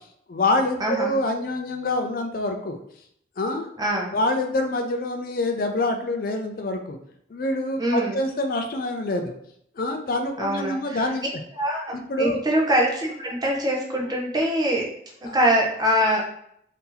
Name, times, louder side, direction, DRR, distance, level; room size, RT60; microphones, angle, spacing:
voice 1, 0.3-2.8 3.4-3.7 4.1-7.0 7.3-9.3 9.8-11.2 11.9-12.4 15.3-15.4, left 2 dB, 50° left, 5 dB, 0.4 m, -26 dB
voice 2, 0.8-1.2 3.8-4.2 7.8-8.2 10.4-11.1 11.5-14.9 15.2-16.2, equal, 20° right, -2 dB, 0.7 m, -24 dB
2.8 x 2.7 x 3.8 m, 0.71 s
head